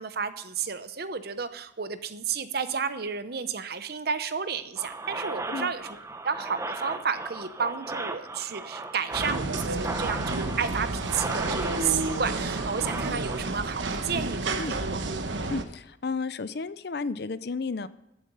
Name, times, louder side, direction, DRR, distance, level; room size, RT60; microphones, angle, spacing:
voice 1, 0.0-5.9 6.2-15.0, right 6 dB, 55° right, 12 dB, 0.8 m, -32 dB
sound 1, 4.8-13.4, right 2 dB, 15° right, 0.8 m, -36 dB
sound 2, 9.1-15.6, right 3 dB, 80° right, 1.2 m, -31 dB
voice 2, 15.5-17.9, left 4 dB, 60° left, 15 dB, 0.6 m, -32 dB
14.0 x 7.6 x 5.5 m, 0.88 s
head